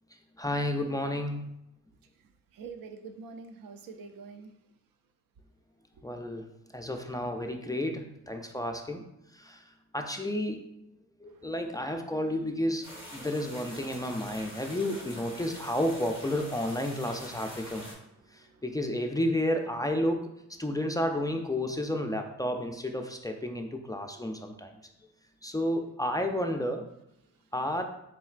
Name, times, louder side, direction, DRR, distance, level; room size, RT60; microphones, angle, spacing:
voice 1, 0.4-1.5 6.0-6.4 6.7-9.0 9.3-9.6 9.9-10.6 11.2-17.8 18.3-20.3 20.6-24.7 25.4-26.8 27.5-27.8, left 1 dB, 10° left, 4 dB, 0.3 m, -31 dB
voice 2, 2.5-4.5 11.3-11.5 18.2-18.6, right 5 dB, 80° right, 8 dB, 0.5 m, -46 dB
sound 1, 12.8-17.9, left 1 dB, 15° right, 1.4 m, -45 dB
4.2 x 3.8 x 2.4 m, 0.81 s
cardioid pair, 85°, 33 cm